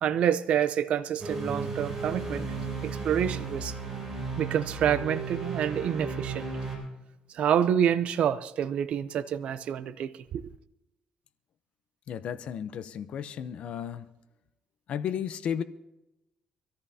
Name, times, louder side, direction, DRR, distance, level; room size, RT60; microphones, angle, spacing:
voice 1, 0.0-2.5 2.8-3.7 4.4-6.5 7.3-10.4, right 9 dB, 65° right, 0.6 m, -27 dB
sound 1, 1.2-6.8, right 4 dB, 15° right, 6.7 m, -34 dB
voice 2, 12.1-14.0 14.9-15.6, left 8 dB, 60° left, 0.7 m, -33 dB
23.5 x 14.0 x 2.8 m
cardioid pair, 120°, 2 cm